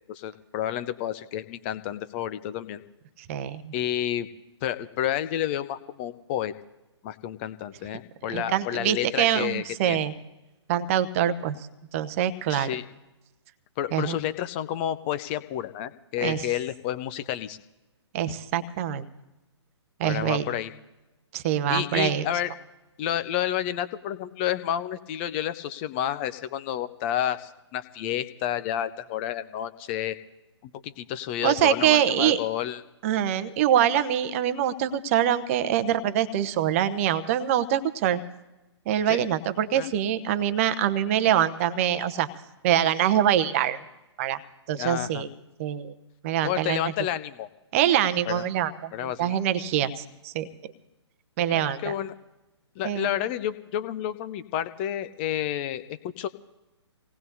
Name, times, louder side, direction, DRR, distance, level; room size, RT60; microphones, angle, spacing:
voice 1, 0.1-2.8 3.7-4.3 4.6-6.5 7.0-10.0 12.5-12.8 13.8-17.6 20.0-20.7 21.7-22.5 23.0-30.2 30.6-32.8 39.1-39.2 39.7-39.9 44.8-45.2 46.4-47.5 48.3-48.4 48.9-49.4 51.5-52.1 52.8-56.3, left 11 dB, 25° left, 13 dB, 0.5 m, -30 dB
voice 2, 3.3-3.7 8.3-10.1 10.7-11.6 11.9-12.7 13.9-14.2 16.2-16.5 18.1-19.0 20.0-20.5 21.3-22.3 31.4-32.4 33.0-38.2 38.9-42.3 42.6-43.8 44.2-44.4 44.7-45.3 45.6-45.9 46.2-46.8 47.7-50.5 51.4-51.9 52.8-53.1, right 10 dB, 30° right, 13 dB, 0.8 m, -24 dB
26.0 x 18.5 x 2.7 m, 1.0 s
figure-of-eight pair, 125°, 15 cm